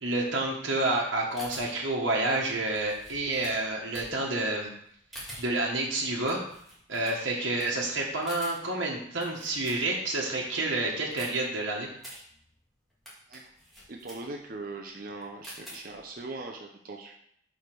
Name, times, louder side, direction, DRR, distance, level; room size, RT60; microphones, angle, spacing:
voice 1, 0.0-4.7 5.4-6.4 6.9-11.9, right 2 dB, 75° right, -3 dB, 1.3 m, -29 dB
sound 1, 1.1-10.2 10.6-16.2, equal, ahead, 2.0 m, -48 dB
voice 2, 13.9-17.1, right 2 dB, 45° right, 1 dB, 0.7 m, -40 dB
5.0 x 4.8 x 6.0 m, 0.67 s
head